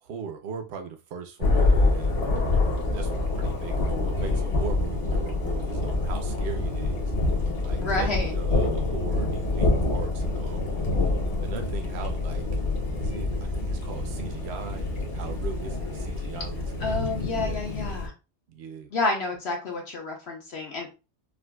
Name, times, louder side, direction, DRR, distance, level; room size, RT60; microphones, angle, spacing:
voice 1, 0.0-2.2 2.9-7.1 7.6-10.7 11.4-12.4 13.0-17.6 18.5-18.9, right 7 dB, 60° right, 5 dB, 0.9 m, -39 dB
Thunder, 1.4-18.1, left 2 dB, 35° left, 0.7 m, -26 dB
voice 2, 7.8-8.3 16.8-18.1 18.9-20.9, left 2 dB, 60° left, 0 dB, 1.1 m, -29 dB
4.9 x 2.1 x 2.2 m, 0.30 s
omnidirectional pair, 1.3 m